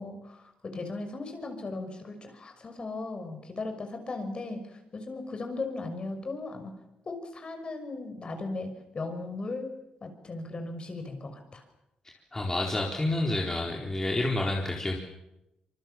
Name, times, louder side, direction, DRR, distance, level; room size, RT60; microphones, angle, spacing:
voice 1, 0.0-6.7 7.1-9.7 10.0-11.6, left 3 dB, 40° left, 6 dB, 6.0 m, -37 dB
voice 2, 12.3-15.0, left 2 dB, 20° left, -1 dB, 4.3 m, -29 dB
26.0 x 24.0 x 7.4 m, 0.90 s
cardioid pair, 90°, 3 cm